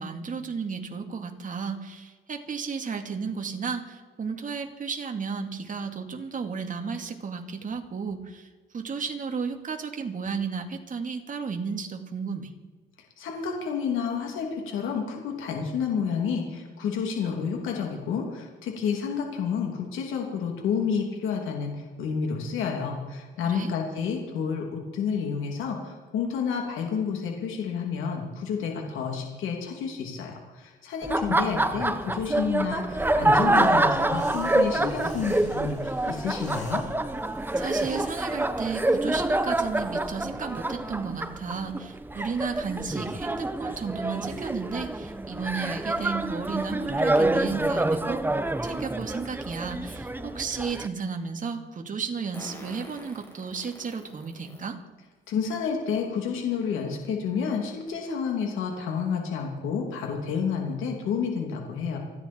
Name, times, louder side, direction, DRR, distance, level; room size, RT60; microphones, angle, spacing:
voice 1, 0.0-8.5 8.7-12.5 23.4-23.7 37.6-48.2 48.6-54.8, right 5 dB, 40° right, 4 dB, 2.4 m, -33 dB
voice 2, 13.2-36.8 55.3-62.0, left 6 dB, 85° left, 1 dB, 3.1 m, -30 dB
Laughter, 31.0-50.9, right 2 dB, 10° right, 1.0 m, -27 dB
sound 1, 33.5-38.5, left 2 dB, 40° left, 6.1 m, -51 dB
Fart, 52.3-54.6 55.3-55.4 56.6-56.7 57.1-57.2 57.6-57.9, left 1 dB, 10° left, 6.6 m, -46 dB
28.5 x 10.5 x 4.6 m, 1.4 s
cardioid pair, 90°, 20 cm